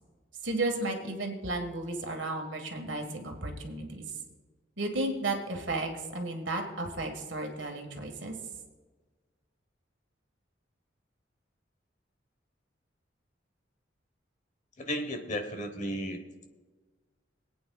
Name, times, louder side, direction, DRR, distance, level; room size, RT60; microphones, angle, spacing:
voice 1, 0.4-4.0 4.8-8.3, right 2 dB, 75° right, 3 dB, 1.6 m, -33 dB
voice 2, 14.8-16.2, equal, 40° left, 6 dB, 1.1 m, -34 dB
26.0 x 8.8 x 2.3 m, 1.3 s
head